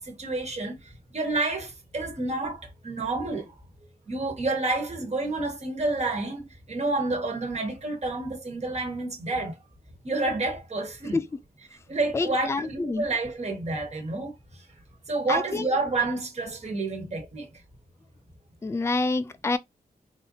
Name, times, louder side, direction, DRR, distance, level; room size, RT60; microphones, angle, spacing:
voice 1, 0.0-3.5 4.1-9.6 10.0-11.2 11.9-14.3 15.1-17.5, right 2 dB, 45° right, 1.4 m, -29 dB
voice 2, 12.1-13.0 15.3-15.6 18.6-19.6, left 3 dB, 20° left, 0.4 m, -27 dB
4.0 x 2.7 x 2.7 m
cardioid pair, 80°, 15 cm